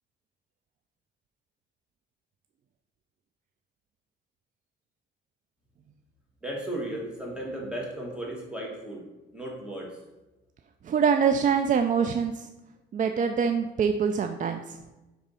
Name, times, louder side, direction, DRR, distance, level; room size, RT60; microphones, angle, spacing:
voice 1, 6.4-9.0 9.3-9.9, right 1 dB, 5° right, -2 dB, 1.8 m, -35 dB
voice 2, 10.8-12.5 12.9-14.8, right 6 dB, 40° right, 7 dB, 0.4 m, -24 dB
5.0 x 3.5 x 5.5 m, 1.1 s
cardioid pair, 90°, 20 cm